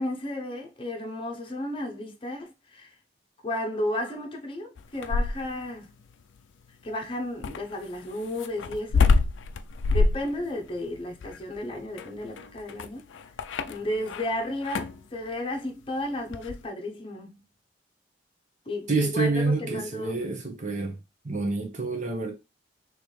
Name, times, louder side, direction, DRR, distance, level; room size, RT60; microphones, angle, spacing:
voice 1, 0.0-3.0 3.4-5.9 6.8-9.1 9.9-13.1 13.7-17.4 18.7-20.2, left 1 dB, 30° left, 0.8 m, -33 dB
sound 1, 4.8-5.7 7.4-14.3 14.6-15.0 16.3-16.6, left 4 dB, 80° left, 0.4 m, -26 dB
voice 2, 18.9-21.0 21.2-22.3, right 3 dB, 40° right, 1.1 m, -27 dB
4.0 x 3.1 x 3.2 m
head